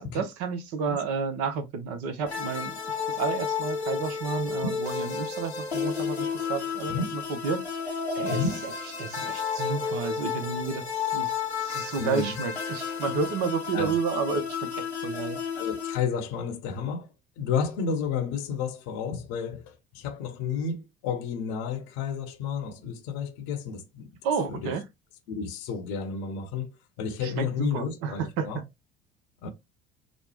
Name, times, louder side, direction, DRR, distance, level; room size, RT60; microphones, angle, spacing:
voice 1, 0.0-7.6 8.1-8.7 9.0-15.4 24.2-24.8 27.2-28.5, right 5 dB, 50° right, 0.7 m, -31 dB
sound 1, 2.3-16.0, left 6 dB, 85° left, 0.6 m, -32 dB
voice 2, 8.3-8.6 12.0-12.3 13.7-13.9 15.6-17.1 17.4-24.1 24.5-24.7 25.3-26.7 27.0-28.6 29.4-29.5, left 6 dB, 55° left, 0.8 m, -31 dB
3.0 x 2.0 x 3.1 m
figure-of-eight pair, 60°, 31 cm